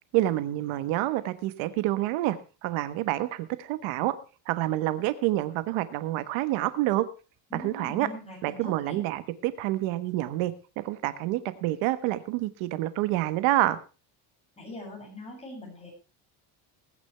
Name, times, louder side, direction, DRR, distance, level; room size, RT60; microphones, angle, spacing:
voice 1, 0.1-2.4 2.6-4.1 4.5-7.0 7.5-8.1 8.4-13.8, right 15 dB, 80° right, 13 dB, 1.3 m, -28 dB
voice 2, 7.5-9.0 14.6-15.9, left 1 dB, 15° left, -1 dB, 7.8 m, -41 dB
21.0 x 10.0 x 3.4 m, 0.33 s
cardioid pair, 165°, 47 cm